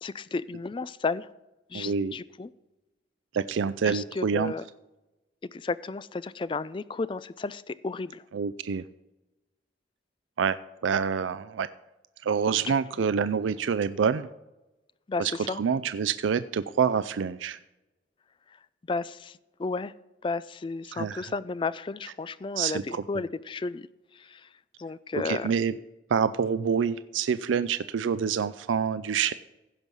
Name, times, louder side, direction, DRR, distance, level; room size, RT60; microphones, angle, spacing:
voice 1, 0.0-1.3 1.7-2.5 3.8-4.6 5.5-8.2 12.7-12.8 15.1-15.6 18.9-19.9 20.2-23.9 24.1-24.5 24.8-25.5, left 4 dB, 25° left, 17 dB, 0.3 m, -33 dB
voice 2, 1.7-2.1 3.3-4.5 8.3-8.8 10.4-11.7 12.2-14.3 15.2-17.6 20.9-21.3 22.6-23.0 25.1-25.7 26.1-29.3, right 6 dB, 80° right, 14 dB, 0.4 m, -27 dB
16.0 x 5.4 x 6.2 m, 1.0 s
head